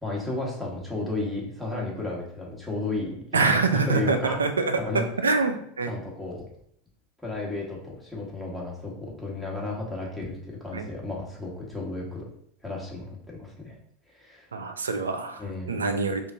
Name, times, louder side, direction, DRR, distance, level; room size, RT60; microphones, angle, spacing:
voice 1, 0.0-3.2 3.4-4.4 4.8-5.0 5.9-6.4 7.2-12.2 12.6-13.7 14.1-14.5 15.4-15.8, left 2 dB, ahead, -4 dB, 1.4 m, -33 dB
voice 2, 3.3-5.9 10.7-10.9 14.5-15.4 15.7-16.3, right 4 dB, 90° right, 8 dB, 0.4 m, -25 dB
5.0 x 2.5 x 2.6 m, 0.68 s
hypercardioid pair, 90°, 0 cm